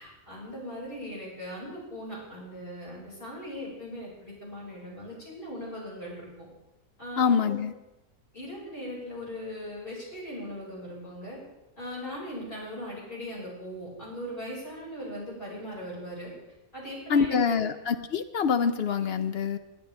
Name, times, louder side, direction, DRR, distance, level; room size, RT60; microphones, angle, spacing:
voice 1, 0.0-6.3 7.0-7.6 8.3-11.4 11.8-16.3 16.7-17.7, equal, 35° left, -5 dB, 5.5 m, -39 dB
voice 2, 7.2-7.7 17.1-19.6, left 6 dB, 60° left, 10 dB, 0.6 m, -25 dB
21.0 x 10.0 x 3.4 m, 0.99 s
omnidirectional pair, 1.6 m